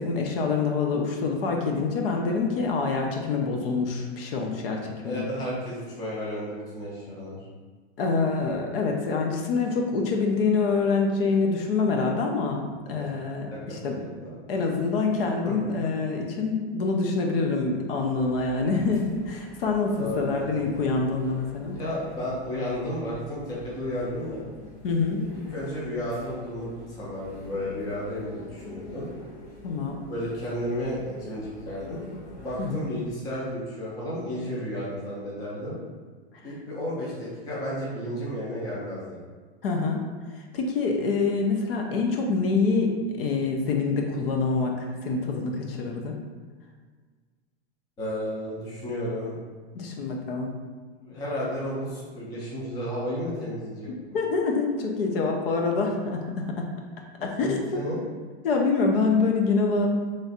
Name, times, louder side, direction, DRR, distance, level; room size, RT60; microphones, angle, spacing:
voice 1, 0.0-5.2 8.0-14.0 14.5-21.8 24.8-25.2 29.6-30.0 32.6-32.9 39.6-40.0 40.5-46.1 49.7-50.5 54.1-56.7 57.2-57.6 58.4-59.9, left 4 dB, 60° left, 1 dB, 0.6 m, -26 dB
voice 2, 5.0-7.4 12.9-13.1 13.5-14.1 15.4-15.5 20.0-20.6 21.6-24.5 25.5-29.1 30.1-32.0 32.4-35.8 36.4-39.2 48.0-49.3 51.0-54.1 57.4-58.0, equal, 10° left, -7 dB, 0.5 m, -33 dB
sound 1, 18.1-33.1, left 1 dB, 85° left, 1.3 m, -46 dB
3.2 x 2.4 x 4.0 m, 1.5 s
supercardioid pair, 165°, 32 cm